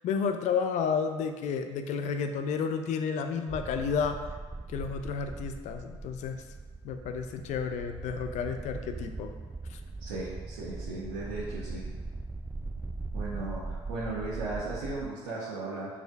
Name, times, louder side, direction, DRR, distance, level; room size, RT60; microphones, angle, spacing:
voice 1, 0.0-4.2 4.7-6.4 6.8-9.3 9.7-9.8, left 6 dB, 55° left, 7 dB, 0.6 m, -31 dB
sound 1, 3.5-15.1, right 3 dB, 10° right, 0.4 m, -40 dB
voice 2, 10.0-11.8 13.1-15.9, right 2 dB, 75° right, -7 dB, 1.3 m, -36 dB
5.0 x 4.2 x 4.6 m, 1.4 s
hypercardioid pair, 65°, 14 cm